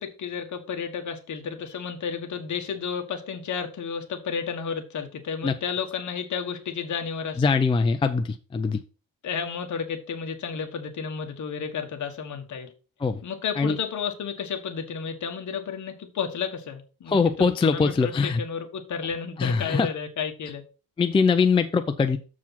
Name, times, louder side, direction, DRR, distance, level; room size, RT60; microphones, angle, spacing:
voice 1, 0.0-7.6 9.2-12.7 13.2-20.6, left 6 dB, 55° left, 1.5 m, -32 dB
voice 2, 7.4-8.8 13.0-13.2 13.6-13.8 17.1-18.4 19.4-19.9 21.0-22.2, left 5 dB, 15° left, 0.4 m, -22 dB
7.1 x 4.8 x 5.8 m
cardioid pair, 165°, 36 cm